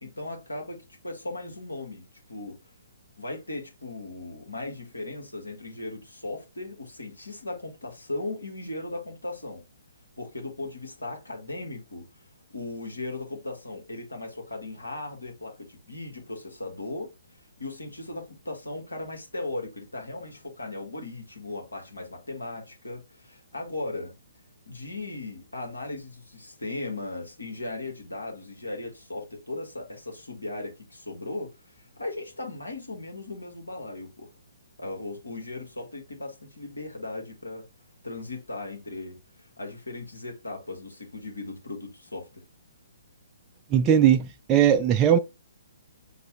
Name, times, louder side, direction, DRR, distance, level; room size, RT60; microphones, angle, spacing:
voice 1, 0.0-2.6 3.2-9.6 10.2-12.1 12.5-17.1 17.6-24.1 24.7-34.3 34.8-37.7 38.0-42.5, left 2 dB, 85° left, 1.6 m, -37 dB
voice 2, 43.7-45.2, right 9 dB, 20° right, 0.4 m, -19 dB
6.4 x 2.3 x 3.1 m
figure-of-eight pair, 130°, 0 cm